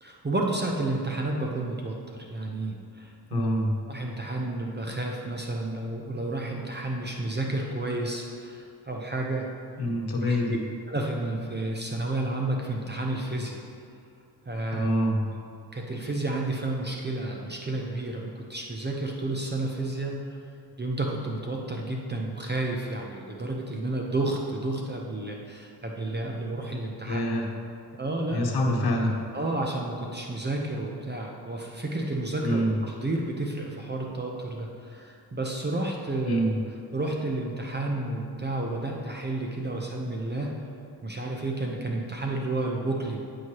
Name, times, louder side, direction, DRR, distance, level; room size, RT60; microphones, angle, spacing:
voice 1, 0.0-3.5 3.9-9.5 10.2-10.4 10.9-13.6 14.5-14.9 15.7-20.4 20.8-27.2 28.0-28.4 29.3-32.6 32.9-36.4 36.9-40.5 41.0-43.3, right 2 dB, 25° right, 0 dB, 0.7 m, -31 dB
voice 2, 3.3-3.7 9.8-10.6 14.7-15.2 27.1-27.4 28.3-29.1 32.4-32.7 36.2-36.5, equal, 65° left, 0 dB, 1.2 m, -25 dB
9.3 x 4.8 x 2.9 m, 2.4 s
cardioid pair, 60°, 42 cm